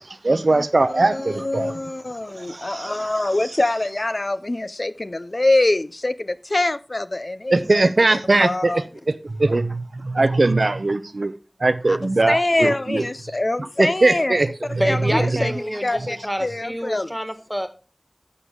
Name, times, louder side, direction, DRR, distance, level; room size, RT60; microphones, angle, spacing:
voice 1, 0.0-1.7 2.4-3.1 7.5-11.3 11.6-13.0 13.6-14.8, right 2 dB, 90° right, 0.6 m, -21 dB
voice 2, 0.5-8.8 10.4-10.5 11.9-12.0 12.3-14.4 14.8-17.1, left 2 dB, 60° left, 0.4 m, -24 dB
voice 3, 14.8-17.7, equal, ahead, 1.5 m, -27 dB
10.5 x 6.9 x 3.7 m
wide cardioid pair, 40°, 0 cm